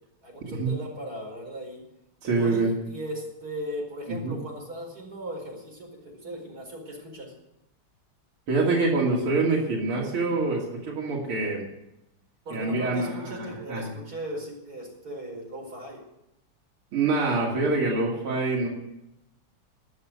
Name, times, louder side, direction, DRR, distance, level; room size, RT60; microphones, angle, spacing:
voice 1, 0.2-1.8 2.4-7.3 12.5-16.0, right 1 dB, 45° right, -1 dB, 5.5 m, -37 dB
voice 2, 2.2-2.7 4.2-4.4 8.5-11.6 12.5-13.9 16.9-18.7, right 3 dB, 75° right, -4 dB, 3.4 m, -25 dB
20.0 x 6.8 x 9.4 m, 0.90 s
omnidirectional pair, 2.4 m